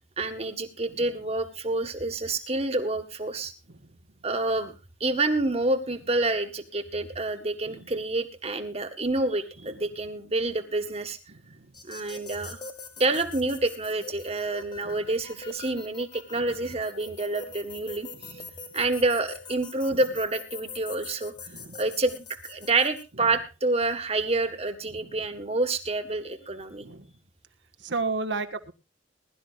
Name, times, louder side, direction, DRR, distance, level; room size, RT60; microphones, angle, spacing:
voice 1, 0.2-3.5 4.2-4.7 5.0-11.2 11.8-12.6 13.0-18.4 18.7-21.3 21.8-26.8, right 2 dB, 30° right, 7 dB, 1.7 m, -28 dB
voice 2, 11.3-11.7 14.8-15.1 18.1-18.5 21.5-21.8 23.2-23.3 24.9-25.1 26.8-27.1 27.8-28.7, right 3 dB, 65° right, 8 dB, 1.5 m, -34 dB
sound 1, 11.7-23.0, left 4 dB, 25° left, 1.7 m, -44 dB
21.5 x 12.5 x 2.5 m, 0.28 s
head